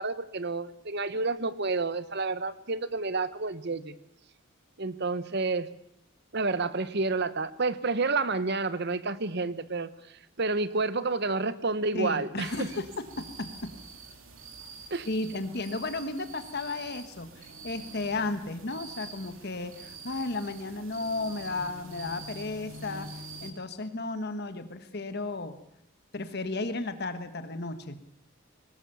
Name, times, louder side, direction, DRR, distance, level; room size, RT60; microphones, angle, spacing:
voice 1, 0.0-4.0 4.8-5.7 6.3-9.9 10.4-12.7 14.9-15.1, right 3 dB, 50° right, 14 dB, 1.1 m, -29 dB
voice 2, 11.9-12.8 13.2-13.7 15.0-23.1 23.4-25.5 26.1-28.0, left 2 dB, 50° left, 10 dB, 1.4 m, -34 dB
sound 1, 12.4-23.5, right 3 dB, 65° right, 2.9 m, -46 dB
22.0 x 19.0 x 7.0 m, 0.78 s
head